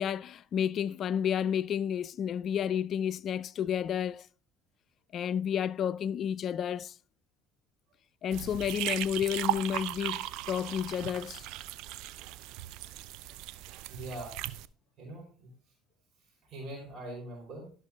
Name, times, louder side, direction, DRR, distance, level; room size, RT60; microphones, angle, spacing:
voice 1, 0.0-4.3 5.1-7.0 8.2-11.4, left 8 dB, 50° left, 0.3 m, -31 dB
sound 1, 8.3-14.7, right 15 dB, 70° right, 0.5 m, -37 dB
voice 2, 13.9-14.4 15.0-15.5 16.4-17.7, right 1 dB, 50° right, 5.0 m, -43 dB
12.5 x 6.1 x 3.7 m
hypercardioid pair, 75°, 0 cm